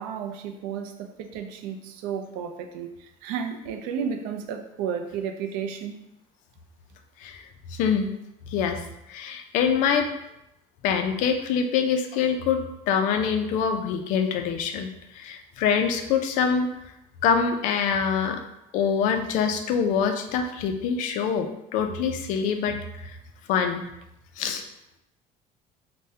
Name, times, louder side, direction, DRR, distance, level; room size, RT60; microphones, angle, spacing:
voice 1, 0.0-6.0, right 7 dB, 85° right, 5 dB, 0.4 m, -33 dB
voice 2, 7.7-8.1 8.5-8.8 9.1-10.1 10.8-12.6 12.9-14.9 15.1-16.7 17.2-18.4 18.7-22.8 23.0-23.1 23.5-23.8 24.4-24.6, left 6 dB, 60° left, 6 dB, 0.4 m, -24 dB
3.4 x 2.1 x 2.7 m, 0.84 s
cardioid pair, 160°, 15 cm